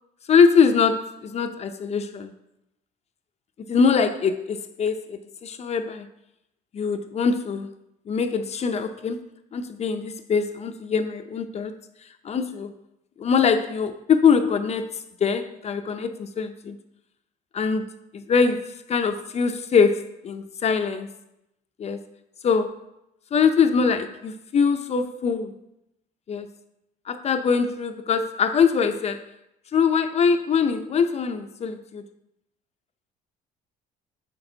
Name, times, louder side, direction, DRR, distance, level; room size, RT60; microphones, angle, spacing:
voice 1, 0.3-2.3 3.7-6.1 6.7-7.7 8.1-9.2 9.5-11.7 12.2-12.7 13.2-14.9 15.2-16.8 17.5-17.8 18.1-21.1 21.8-22.0 22.4-22.8 23.3-25.5 26.3-26.5 27.1-29.2 29.7-32.0, left 6 dB, 40° left, 8 dB, 0.6 m, -23 dB
6.6 x 6.2 x 3.8 m, 0.83 s
cardioid pair, 110°, 17 cm